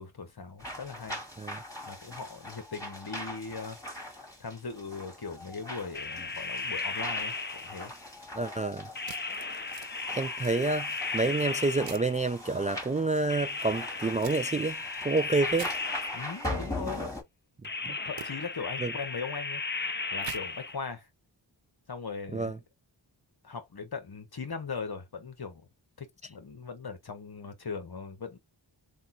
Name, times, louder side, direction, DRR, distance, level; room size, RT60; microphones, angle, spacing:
voice 1, 0.0-1.2 1.9-7.9 16.1-17.1 17.8-21.1 21.9-22.6 23.4-25.7 26.0-28.4, left 5 dB, 55° left, 1.4 m, -40 dB
sound 1, 0.6-17.2, left 1 dB, 5° left, 2.5 m, -41 dB
sound 2, 5.9-8.0 9.0-12.4 13.3-16.6 17.6-20.8, left 3 dB, 25° left, 0.6 m, -35 dB
voice 2, 8.4-8.9 10.1-10.9 11.1-14.8 15.0-15.7 17.9-18.0 18.8-18.9 22.3-22.6, right 3 dB, 20° right, 0.3 m, -28 dB
sound 3, 9.0-9.9 10.4-11.0 11.8-12.1 14.2-14.4 15.5-15.7 18.2-18.3 20.2-20.4, right 9 dB, 70° right, 0.7 m, -44 dB
3.6 x 2.5 x 4.2 m
cardioid pair, 50°, 46 cm